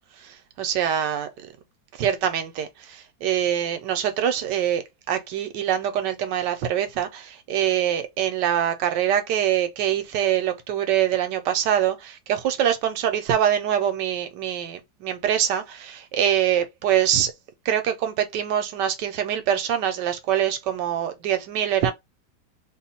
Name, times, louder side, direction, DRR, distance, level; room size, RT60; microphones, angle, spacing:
voice 1, 0.2-1.5 2.0-17.3 17.7-21.9, right 10 dB, 75° right, 1.3 m, -24 dB
3.1 x 2.2 x 4.2 m
omnidirectional pair, 1.9 m